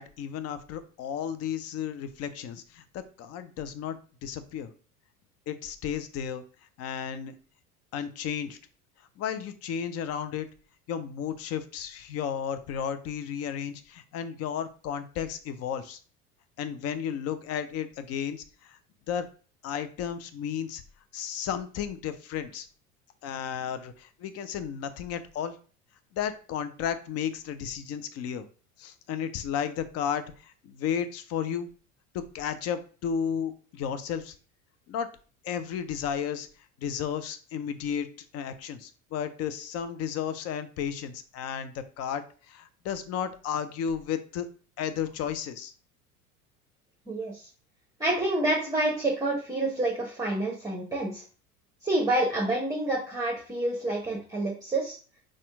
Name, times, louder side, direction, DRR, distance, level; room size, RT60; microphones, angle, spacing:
voice 1, 0.0-4.7 5.5-6.4 6.8-7.4 7.9-8.6 9.2-10.5 10.9-16.0 16.6-18.8 19.1-19.3 19.6-20.8 21.1-22.7 23.2-25.6 26.1-28.5 28.8-31.7 32.1-34.3 34.9-35.1 35.4-36.5 36.8-38.1 38.3-44.5 44.8-45.7, left 8 dB, 35° left, 11 dB, 0.6 m, -33 dB
voice 2, 47.1-47.5 48.0-51.2 51.8-55.0, right 2 dB, 10° right, -2 dB, 1.1 m, -28 dB
4.2 x 2.5 x 4.7 m, 0.38 s
figure-of-eight pair, 70°, 43 cm